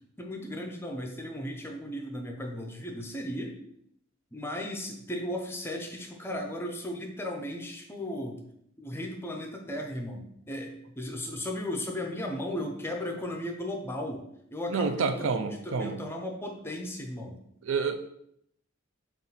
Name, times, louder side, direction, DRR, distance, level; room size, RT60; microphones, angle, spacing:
voice 1, 0.2-3.6 4.3-8.4 8.8-14.2 14.5-17.4, left 1 dB, 10° left, 2 dB, 0.5 m, -36 dB
voice 2, 14.7-16.0 17.6-18.0, right 5 dB, 65° right, 7 dB, 0.4 m, -28 dB
5.4 x 2.5 x 3.9 m, 0.74 s
head